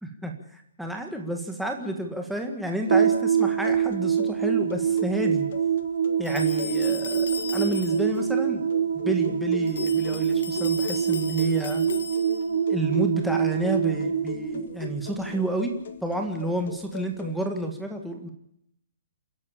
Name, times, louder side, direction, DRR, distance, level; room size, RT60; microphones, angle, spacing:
voice 1, 0.0-5.5 6.2-8.7 8.9-11.9 12.7-15.7 16.0-18.3, right 1 dB, ahead, 2 dB, 1.8 m, -30 dB
sound 1, 2.9-17.4, left 9 dB, 40° left, 1.6 m, -40 dB
sound 2, 2.9-15.4, right 8 dB, 70° right, 3.0 m, -25 dB
sound 3, 6.2-8.2 9.7-12.6, left 5 dB, 75° left, 2.6 m, -37 dB
28.5 x 11.0 x 8.8 m, 0.74 s
hypercardioid pair, 180°, 0 cm